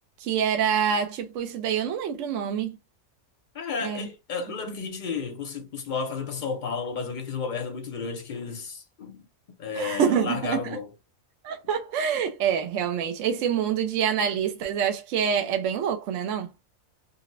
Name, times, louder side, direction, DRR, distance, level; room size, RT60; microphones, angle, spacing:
voice 1, 0.2-2.8 3.8-4.1 9.8-10.8 11.4-16.5, right 8 dB, 70° right, 0.9 m, -26 dB
voice 2, 3.5-9.3 9.6-10.9, left 5 dB, 70° left, 0.4 m, -32 dB
3.8 x 2.0 x 2.5 m
omnidirectional pair, 1.4 m